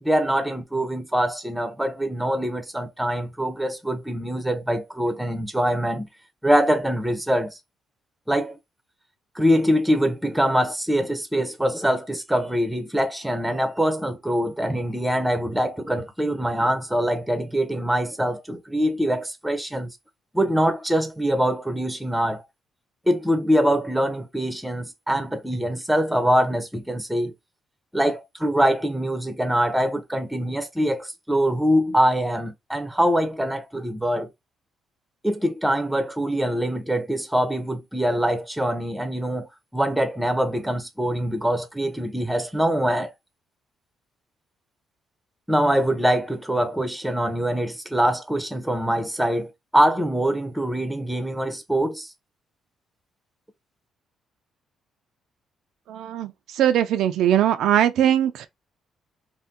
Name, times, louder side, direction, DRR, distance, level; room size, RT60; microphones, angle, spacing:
voice 1, 0.0-6.1 6.4-7.6 8.3-8.6 9.3-20.0 20.3-22.4 23.1-27.3 27.9-34.3 35.2-43.1 45.5-52.1, equal, 5° right, 0.7 m, -23 dB
voice 2, 55.9-58.5, right 10 dB, 80° right, 0.4 m, -21 dB
2.7 x 2.1 x 3.5 m
cardioid pair, 100°, 0 cm